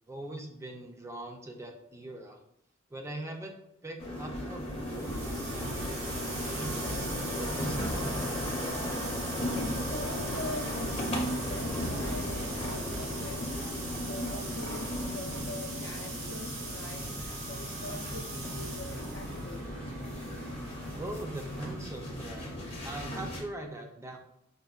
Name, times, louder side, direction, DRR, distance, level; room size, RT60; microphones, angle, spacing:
voice 1, 0.1-2.4 2.9-8.3 21.0-22.5 22.8-24.2, right 1 dB, 15° right, 3 dB, 0.4 m, -42 dB
sound 1, 4.0-23.4, left 1 dB, 30° left, 0.7 m, -36 dB
sound 2, 4.7-19.6, right 3 dB, 80° right, 1.2 m, -41 dB
Engine, 5.0-21.7, equal, 65° right, 0.8 m, -44 dB
voice 2, 9.5-13.8 14.0-19.6, left 1 dB, 70° left, 4 dB, 0.6 m, -41 dB
5.2 x 2.1 x 2.3 m, 0.76 s
head